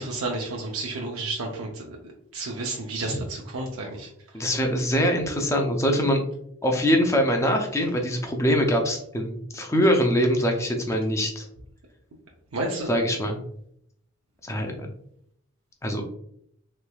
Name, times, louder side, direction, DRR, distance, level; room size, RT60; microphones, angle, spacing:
voice 1, 0.0-2.0 2.3-4.1 12.5-12.9, right 2 dB, 90° right, -1 dB, 0.5 m, -31 dB
voice 2, 4.3-6.2 6.6-11.5 12.9-13.4 14.4-14.9 15.8-16.1, equal, 15° left, 2 dB, 0.5 m, -23 dB
3.2 x 3.1 x 2.2 m, 0.71 s
head